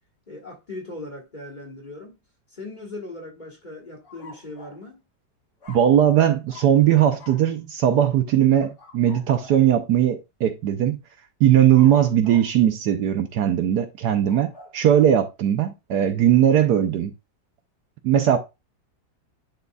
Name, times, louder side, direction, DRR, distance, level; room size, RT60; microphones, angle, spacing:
voice 1, 0.3-2.2 2.5-5.0, left 2 dB, 25° left, 1.5 m, -38 dB
sound 1, 4.0-4.8 5.6-6.2 6.5-6.8 7.2-7.5 8.5-9.7 11.7-12.6 14.0-14.8, left 3 dB, 55° left, 3.0 m, -47 dB
voice 2, 5.7-11.0 11.4-17.1 18.0-18.4, right 10 dB, 70° right, 1.2 m, -19 dB
10.5 x 4.0 x 2.3 m
omnidirectional pair, 2.0 m